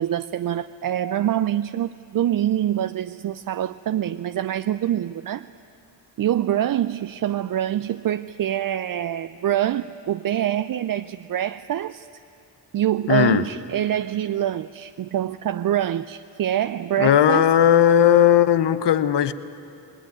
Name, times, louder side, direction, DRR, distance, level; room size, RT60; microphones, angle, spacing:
voice 1, 0.0-5.5 6.2-12.1 12.7-17.5, right 11 dB, 50° right, 12 dB, 0.5 m, -25 dB
voice 2, 13.1-13.4 17.0-19.3, left 10 dB, 65° left, 14 dB, 0.9 m, -17 dB
20.0 x 19.0 x 9.3 m, 2.7 s
supercardioid pair, 45°, 45 cm